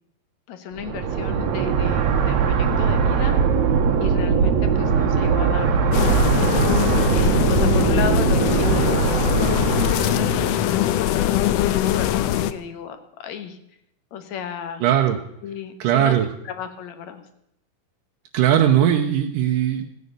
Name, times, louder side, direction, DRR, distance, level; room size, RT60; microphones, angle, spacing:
voice 1, 0.5-3.4 4.0-6.6 7.1-13.6 14.1-14.8 15.4-17.2, left 8 dB, 65° left, 9 dB, 2.4 m, -34 dB
sound 1, 0.8-10.6, right 6 dB, 65° right, 2.4 m, -20 dB
sound 2, 5.9-12.5, left 11 dB, 85° left, 1.4 m, -22 dB
voice 2, 14.8-15.2 15.8-16.3 18.3-19.8, right 10 dB, 85° right, 3 dB, 2.5 m, -18 dB
15.5 x 9.5 x 6.7 m, 0.77 s
omnidirectional pair, 3.7 m